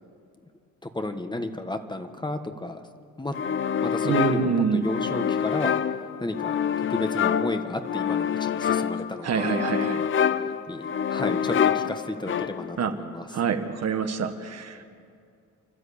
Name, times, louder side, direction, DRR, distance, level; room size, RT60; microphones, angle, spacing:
voice 1, 0.8-2.8 3.2-3.3 3.8-5.7 6.2-9.5 9.9-10.1 10.3-13.4, left 2 dB, 15° left, 7 dB, 1.4 m, -32 dB
sound 1, 3.3-12.8, left 8 dB, 40° left, 0.7 m, -27 dB
voice 2, 4.0-4.9 9.2-10.0 12.8-12.9 13.3-14.8, right 6 dB, 55° right, 7 dB, 1.6 m, -26 dB
29.0 x 12.5 x 8.5 m, 2.4 s
cardioid pair, 90°, 30 cm